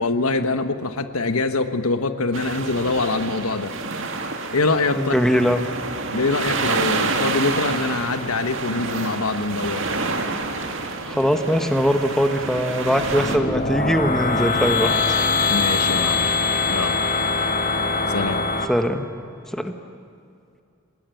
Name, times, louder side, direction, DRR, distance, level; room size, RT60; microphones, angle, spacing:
voice 1, 0.0-3.7 4.5-5.2 6.1-9.9 15.5-17.0 18.1-18.5, left 3 dB, 80° left, 10 dB, 1.3 m, -24 dB
sound 1, 2.3-13.4, right 3 dB, 60° right, 2.1 m, -28 dB
voice 2, 5.0-5.6 11.1-14.9 18.7-19.0 19.5-19.7, equal, ahead, 6 dB, 1.2 m, -21 dB
sound 2, 12.9-18.7, left 4 dB, 35° left, 1.8 m, -22 dB
27.5 x 19.5 x 9.2 m, 2.5 s
head